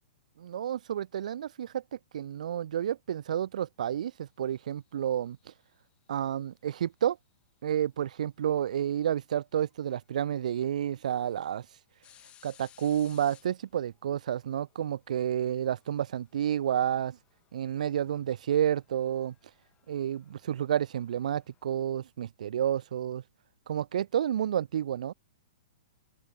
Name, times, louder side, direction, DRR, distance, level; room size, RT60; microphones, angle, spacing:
voice 1, 0.4-1.8 2.1-5.4 6.1-7.2 7.6-11.7 12.4-17.2 17.5-19.3 19.9-23.2 23.7-25.1, right 10 dB, 55° right, 0.4 m, -30 dB
sound 1, 4.7-6.1 8.0-8.1 9.7-9.8 10.2-10.3 10.8-21.9, left 12 dB, 25° left, 2.1 m, -63 dB
open air
figure-of-eight pair, 110°, 5 cm